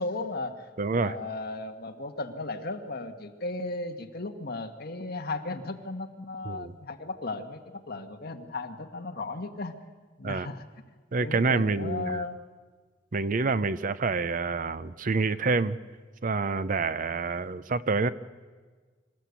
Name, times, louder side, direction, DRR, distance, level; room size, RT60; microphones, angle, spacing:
voice 1, 0.0-9.8 10.2-10.6 11.2-12.4, left 2 dB, 50° left, 5 dB, 1.5 m, -35 dB
voice 2, 0.8-1.2 6.5-6.8 10.2-10.5 11.1-12.2 13.1-15.8 16.2-18.1, right 4 dB, 45° right, 15 dB, 0.6 m, -27 dB
26.0 x 15.0 x 8.3 m, 1.5 s
head